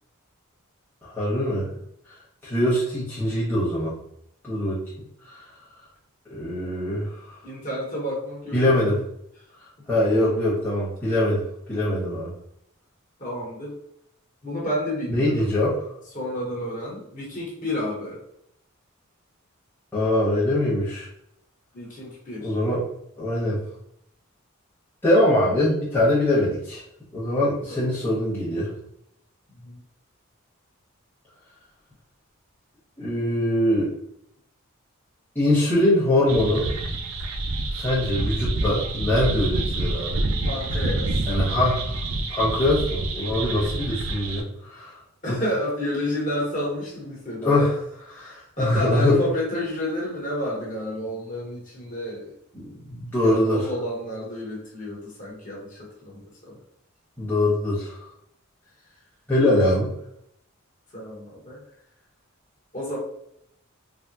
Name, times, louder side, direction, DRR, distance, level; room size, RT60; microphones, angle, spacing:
voice 1, 1.0-1.7 2.4-4.0 4.4-4.8 5.3-5.5 6.3-7.3 8.5-9.0 9.9-11.4 11.7-12.3 15.1-15.7 19.9-21.1 22.4-22.8 23.2-23.6 25.0-26.8 27.1-28.7 33.0-33.9 35.3-36.7 37.7-40.3 41.3-42.0 42.3-44.9 45.3-45.4 47.4-47.7 48.2-49.2 52.5-53.6 57.2-58.0 59.3-59.9, left 1 dB, 10° left, -10 dB, 0.9 m, -23 dB
voice 2, 7.4-8.8 9.9-10.4 13.2-13.8 14.4-15.5 16.1-18.2 21.7-22.5 27.7-27.9 29.6-29.8 40.4-41.2 45.2-47.7 48.1-52.3 53.2-56.6 60.9-61.6 62.7-63.0, left 1 dB, 35° left, -5 dB, 1.1 m, -30 dB
sound 1, 36.3-44.4, right 2 dB, 75° right, 0.4 m, -27 dB
3.5 x 2.0 x 2.6 m, 0.75 s
head